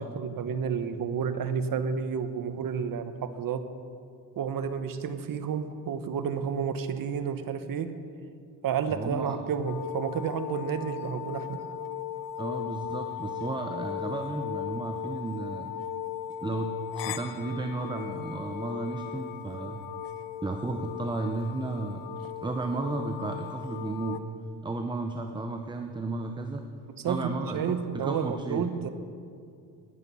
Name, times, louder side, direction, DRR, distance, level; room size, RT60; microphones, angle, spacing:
voice 1, 0.0-3.6 4.4-7.9 8.6-11.6 27.0-28.9, right 6 dB, 50° right, 10 dB, 1.1 m, -31 dB
voice 2, 8.9-9.4 12.4-15.7 16.4-19.8 20.4-22.0 22.4-24.2 24.6-26.6 27.1-28.7, right 3 dB, 10° right, 5 dB, 0.7 m, -33 dB
sound 1, 9.6-24.2, left 9 dB, 70° left, 0.8 m, -37 dB
19.0 x 8.1 x 5.5 m, 2.3 s
cardioid pair, 105°, 44 cm